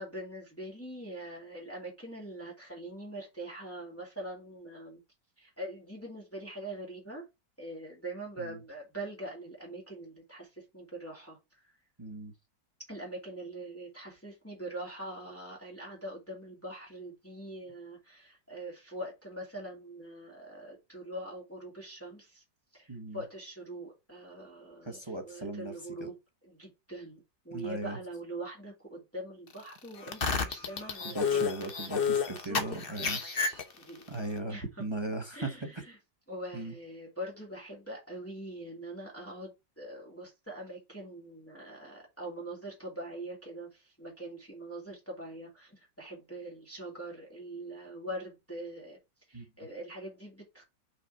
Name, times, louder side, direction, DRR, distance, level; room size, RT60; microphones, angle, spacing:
voice 1, 0.0-5.0 5.4-7.3 7.6-11.7 12.9-22.4 22.7-26.2 26.4-31.9 32.3-34.0 34.5-34.8 35.3-36.0 36.3-49.0 49.3-50.6, right 1 dB, 5° left, 2.7 m, -43 dB
voice 2, 12.0-12.3 22.9-23.2 24.8-25.7 26.0-26.1 27.5-28.0 31.0-33.2 34.1-35.7 36.5-36.7 49.3-49.4, right 2 dB, 20° right, 1.0 m, -38 dB
sound 1, 30.0-34.0, left 6 dB, 40° left, 0.9 m, -30 dB
5.8 x 4.7 x 4.4 m
omnidirectional pair, 2.0 m